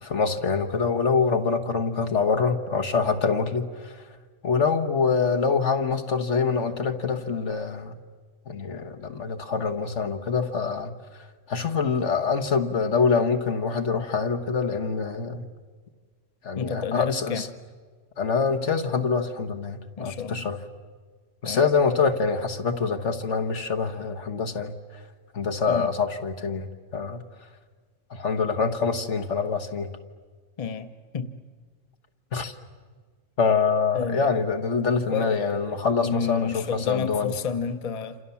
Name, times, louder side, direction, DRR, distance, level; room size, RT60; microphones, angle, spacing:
voice 1, 0.0-4.0 4.4-7.9 8.5-10.9 11.5-15.4 16.4-17.5 18.2-20.6 21.4-24.7 25.3-27.2 28.1-29.9 32.3-32.5 33.4-37.3, left 5 dB, 65° left, 6 dB, 1.7 m, -25 dB
voice 2, 16.6-17.5 20.0-20.5 21.4-21.7 25.7-25.9 30.6-31.3 33.9-34.3 35.1-38.2, left 6 dB, 30° left, 9 dB, 0.9 m, -31 dB
28.0 x 27.5 x 7.1 m, 1.5 s
omnidirectional pair, 1.3 m